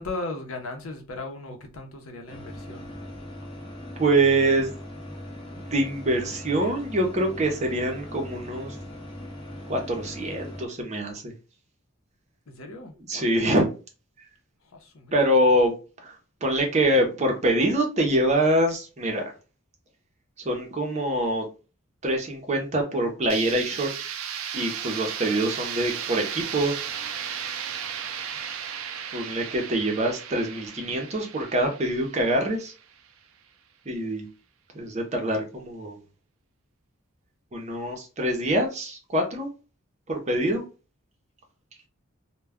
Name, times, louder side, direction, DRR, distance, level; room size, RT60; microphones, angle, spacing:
voice 1, 0.0-2.9 12.5-13.0 14.6-15.1, left 2 dB, 80° left, 0.7 m, -37 dB
sound 1, 2.3-10.6, left 1 dB, 25° left, 0.6 m, -40 dB
voice 2, 4.0-4.7 5.6-8.7 9.7-11.3 13.1-13.7 15.1-15.7 16.0-19.2 20.4-21.5 22.0-23.9 24.5-26.7 29.1-32.7 33.9-34.3 34.7-36.0 37.5-39.5 40.1-40.6, right 1 dB, 35° right, 0.6 m, -25 dB
sound 2, 23.3-33.1, right 8 dB, 70° right, 0.4 m, -35 dB
2.2 x 2.1 x 3.4 m
head